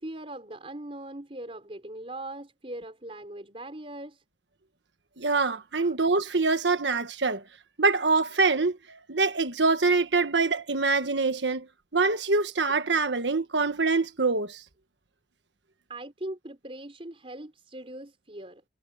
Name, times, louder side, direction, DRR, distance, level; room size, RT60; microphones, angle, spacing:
voice 1, 0.0-4.2 5.8-6.0 13.1-13.2 15.9-18.6, right 1 dB, 35° right, 4.4 m, -40 dB
voice 2, 5.2-7.4 7.8-11.7 11.9-14.6, right 3 dB, 85° right, 1.4 m, -25 dB
head